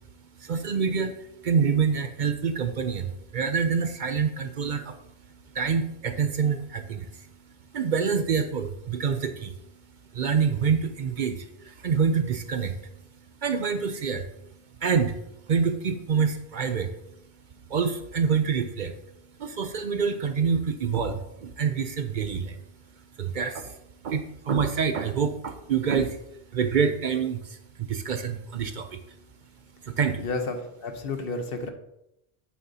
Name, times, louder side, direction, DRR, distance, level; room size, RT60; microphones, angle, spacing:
voice 1, 0.4-5.0 5.5-7.3 7.7-9.5 10.1-12.8 13.4-14.3 14.8-15.2 15.5-16.9 17.7-19.0 19.4-22.6 23.2-23.8 24.0-26.2 26.5-29.0 29.8-30.2, right 6 dB, 55° right, 9 dB, 0.6 m, -26 dB
voice 2, 30.2-31.7, left 3 dB, 65° left, 6 dB, 1.0 m, -31 dB
8.3 x 7.6 x 2.8 m, 0.83 s
omnidirectional pair, 1.1 m